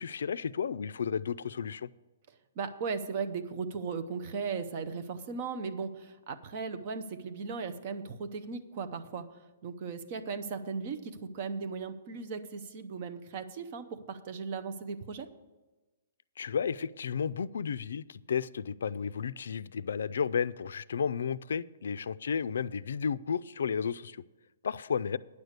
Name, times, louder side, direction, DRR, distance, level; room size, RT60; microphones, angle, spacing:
voice 1, 0.0-1.9 16.4-24.2 24.6-25.2, left 6 dB, 80° left, 15 dB, 0.3 m, -33 dB
voice 2, 2.6-9.3 9.6-15.3, right 5 dB, 30° right, 8 dB, 0.7 m, -37 dB
9.6 x 6.6 x 8.0 m, 1.2 s
hypercardioid pair, 170°, 0 cm